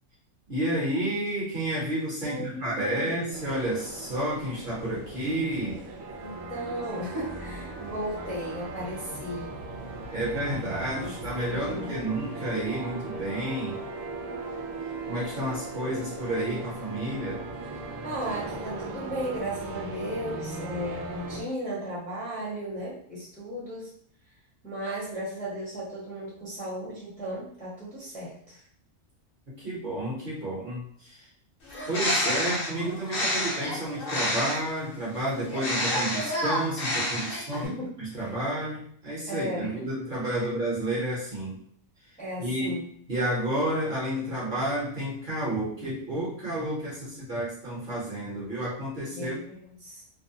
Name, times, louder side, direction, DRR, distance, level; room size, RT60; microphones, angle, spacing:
voice 1, 0.5-5.8 10.1-13.8 15.1-17.4 29.5-31.3 31.9-37.7 38.0-41.6 42.4-42.8 43.1-49.4, right 1 dB, 45° right, -7 dB, 0.9 m, -31 dB
voice 2, 2.2-3.5 6.2-9.6 11.0-11.2 11.5-12.0 18.0-23.9 24.6-28.6 37.5-38.3 39.3-39.9 40.4-40.5 42.2-42.8 49.1-50.0, right 1 dB, 10° left, -7 dB, 0.7 m, -36 dB
sound 1, 3.3-21.4, right 2 dB, 90° right, 1.0 m, -38 dB
Bird, 31.6-34.8 35.5-37.7, left 1 dB, 50° left, 0.8 m, -29 dB
2.5 x 2.1 x 2.7 m, 0.63 s
omnidirectional pair, 1.3 m